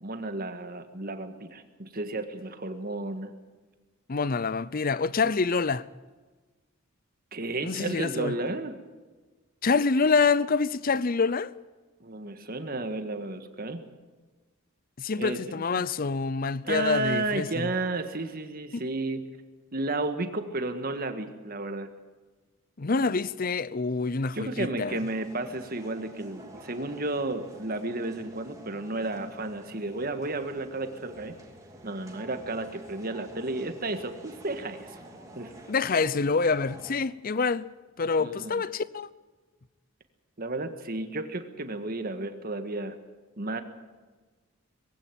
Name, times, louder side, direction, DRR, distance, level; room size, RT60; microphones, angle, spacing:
voice 1, 0.0-3.3 7.3-8.8 12.0-13.8 15.2-15.4 15.8-15.9 16.6-19.2 19.7-21.9 24.3-31.4 31.8-35.0 35.4-35.5 38.2-38.6 40.4-43.0 43.4-43.6, right 2 dB, 45° right, 1.7 m, -32 dB
voice 2, 4.1-5.9 7.6-8.3 9.6-11.5 15.0-17.7 18.7-18.8 22.8-25.0 35.7-37.7 38.0-39.1, left 4 dB, 40° left, 0.6 m, -26 dB
sound 1, 24.9-36.9, right 1 dB, 15° right, 2.8 m, -49 dB
21.0 x 16.0 x 9.3 m
head